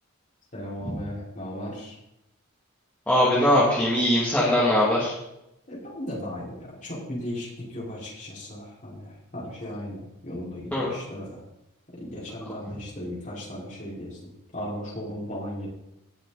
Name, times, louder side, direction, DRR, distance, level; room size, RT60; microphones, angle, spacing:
voice 1, 0.5-2.0 5.7-11.4 11.9-15.7, left 1 dB, 35° left, -6 dB, 5.3 m, -36 dB
voice 2, 3.1-5.1 10.7-11.0, left 1 dB, 5° left, -8 dB, 2.6 m, -21 dB
19.0 x 6.5 x 4.3 m, 0.85 s
head